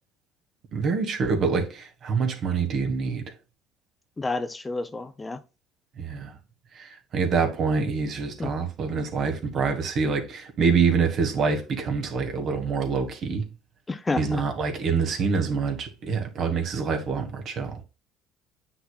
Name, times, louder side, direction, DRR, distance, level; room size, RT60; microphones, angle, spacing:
voice 1, 0.7-3.2 6.0-6.3 6.8-13.4 14.2-17.8, right 5 dB, 55° right, 1.6 m, -26 dB
voice 2, 4.2-5.4 8.4-8.5 13.9-14.4, left 3 dB, 20° left, 0.6 m, -29 dB
8.2 x 5.8 x 2.3 m
supercardioid pair, 85°, 0 cm